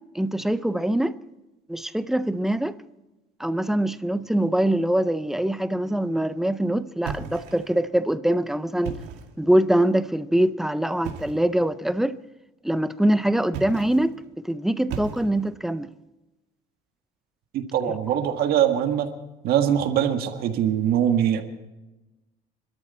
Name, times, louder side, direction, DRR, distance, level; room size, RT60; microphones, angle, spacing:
voice 1, 0.2-1.2 1.7-2.7 3.4-9.0 9.4-12.2 12.6-14.2 14.4-15.9, right 1 dB, ahead, 0.5 m, -23 dB
sound 1, 7.0-7.9 8.7-9.4 11.0-11.5 13.5-14.1 14.9-15.6, right 6 dB, 80° right, 2.2 m, -36 dB
voice 2, 17.5-19.1 19.4-21.4, right 9 dB, 65° right, 1.8 m, -22 dB
24.5 x 13.0 x 4.3 m
cardioid pair, 160°, 18 cm